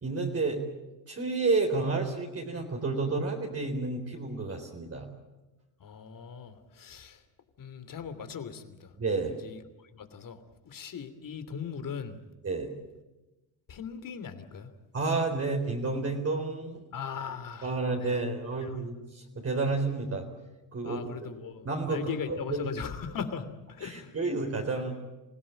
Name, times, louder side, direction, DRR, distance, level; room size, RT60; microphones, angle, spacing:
voice 1, 0.0-0.6 1.1-5.1 9.0-9.3 12.4-12.7 14.9-16.8 17.6-20.3 20.7-21.0 21.6-22.6 23.8-25.0, right 3 dB, 30° right, 1 dB, 4.0 m, -30 dB
voice 2, 5.8-7.2 7.6-8.9 9.3-9.6 9.9-12.1 13.7-14.7 16.9-18.2 18.6-18.8 20.8-24.2, left 6 dB, 45° left, 10 dB, 3.0 m, -39 dB
27.0 x 16.5 x 9.1 m, 1.1 s
hypercardioid pair, 70°, 45 cm